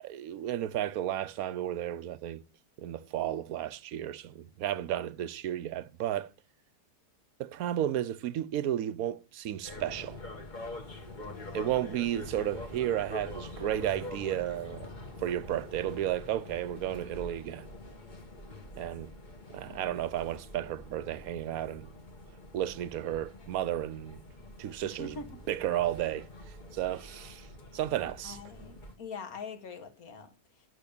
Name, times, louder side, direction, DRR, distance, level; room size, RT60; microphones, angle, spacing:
voice 1, 0.0-2.4 2.8-6.3 7.4-10.2 11.5-14.9 15.2-17.7 18.8-19.1 19.5-21.9 22.5-24.2 24.6-25.2 25.5-26.3 26.7-27.5 27.7-28.4, right 12 dB, 65° right, 1.1 m, -33 dB
sound 1, 9.6-29.0, left 1 dB, 30° left, 1.5 m, -45 dB
voice 2, 11.3-12.0 19.6-19.9 24.8-25.5 28.2-30.6, left 4 dB, 60° left, 2.0 m, -45 dB
10.5 x 7.1 x 6.9 m
omnidirectional pair, 1.8 m